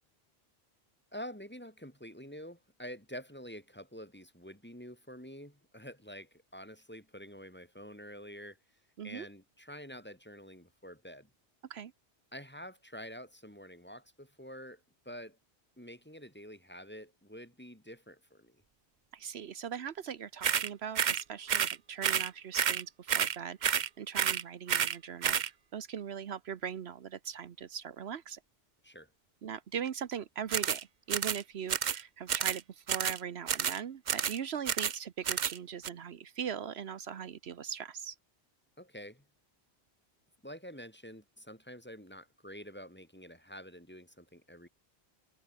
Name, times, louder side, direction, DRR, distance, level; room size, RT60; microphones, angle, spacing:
voice 1, 1.1-8.6 9.0-11.3 12.3-15.4 15.8-18.6 28.8-29.1 38.8-39.3 40.4-44.7, equal, 10° left, 3.7 m, -48 dB
voice 2, 19.1-28.4 29.4-30.8 31.1-38.1, right 8 dB, 75° right, 1.1 m, -40 dB
sound 1, 20.4-20.7 21.0-21.2 21.5-21.8 22.0-22.3 22.5-22.8 23.1-23.4 23.6-23.9 24.2-24.4 24.7-25.0 25.2-25.5 30.5-30.8 31.1-31.4 31.7-32.0 32.3-32.6 32.9-33.2 33.5-33.8 34.1-34.4 34.7-35.0 35.3-35.6 35.8-35.9, right 8 dB, 50° right, 0.7 m, -30 dB
omnidirectional pair, 1.1 m